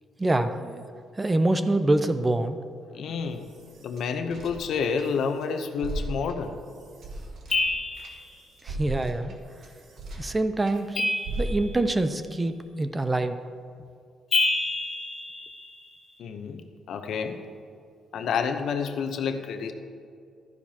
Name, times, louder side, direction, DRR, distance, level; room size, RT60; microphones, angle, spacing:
voice 1, 0.2-0.8 1.2-2.6 8.6-9.3 10.2-13.4, right 2 dB, 20° right, 9 dB, 0.6 m, -25 dB
voice 2, 2.9-3.5 3.8-6.6 16.2-16.6 16.9-17.4 18.1-19.7, left 6 dB, 70° left, 7 dB, 0.8 m, -29 dB
sound 1, 3.1-5.4 5.7-10.8 11.2-11.9, right 1 dB, 65° right, 1.4 m, -37 dB
sound 2, 7.5-8.3 10.9-12.0 14.3-16.0, left 3 dB, 50° left, 2.0 m, -28 dB
12.0 x 10.5 x 2.9 m, 2.3 s
cardioid pair, 90°, 0 cm